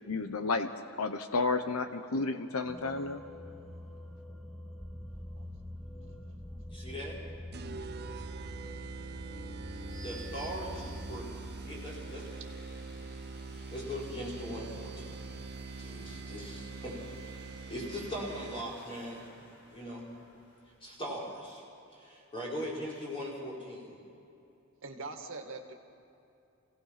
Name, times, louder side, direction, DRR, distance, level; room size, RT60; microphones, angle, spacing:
voice 1, 0.1-0.7 1.0-3.2, left 3 dB, 85° left, 9 dB, 0.9 m, -31 dB
sound 1, 2.7-11.2, left 1 dB, ahead, 1.3 m, -45 dB
voice 2, 6.7-7.2 10.0-12.5 13.7-15.3 15.8-17.3 17.7-19.3 19.7-20.1 20.8-21.6 21.9-23.9, equal, 25° left, -5 dB, 4.9 m, -40 dB
sound 2, 7.5-18.9, right 4 dB, 50° right, 0.6 m, -43 dB
sound 3, 7.7-21.4, left 1 dB, 60° left, 7.1 m, -57 dB
voice 3, 24.8-25.7, right 3 dB, 65° right, 4 dB, 1.9 m, -43 dB
26.0 x 17.5 x 5.9 m, 2.7 s
head